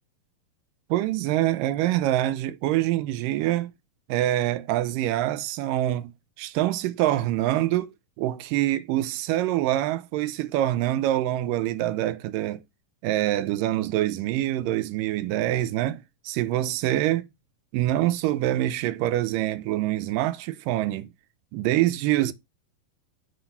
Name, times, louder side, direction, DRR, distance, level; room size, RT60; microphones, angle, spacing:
voice 1, 0.9-3.7 4.1-6.1 6.4-12.6 13.0-17.3 17.7-21.1 21.5-22.3, right 14 dB, 85° right, 2.3 m, -25 dB
7.8 x 3.5 x 5.7 m
omnidirectional pair, 3.9 m